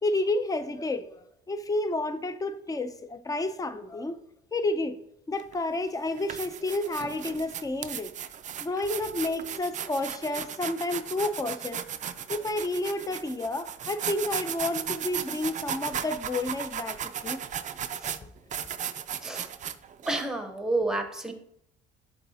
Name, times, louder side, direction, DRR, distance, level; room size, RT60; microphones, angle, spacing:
voice 1, 0.0-4.2 4.5-5.0 5.3-8.1 8.6-11.8 12.3-17.4, left 2 dB, 15° left, 0.5 m, -30 dB
sound 1, 5.4-5.5 6.1-20.2, right 9 dB, 35° right, 0.4 m, -36 dB
voice 2, 20.1-21.3, right 2 dB, 5° right, 0.9 m, -30 dB
11.5 x 4.0 x 2.8 m
cardioid pair, 125°, 21 cm